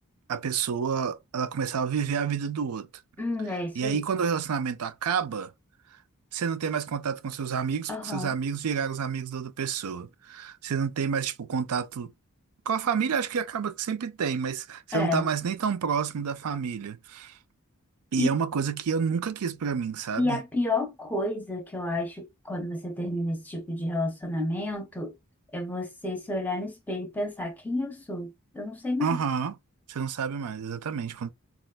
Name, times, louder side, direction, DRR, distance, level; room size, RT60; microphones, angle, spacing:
voice 1, 0.3-2.9 3.8-5.5 6.3-12.1 12.7-17.4 18.1-20.4 29.0-29.6 29.9-31.3, right 6 dB, 85° right, 0.5 m, -29 dB
voice 2, 3.2-4.0 7.9-8.4 14.9-15.3 18.2-18.3 20.2-25.1 25.5-29.2, left 2 dB, 10° left, 0.6 m, -30 dB
4.2 x 2.3 x 2.2 m
head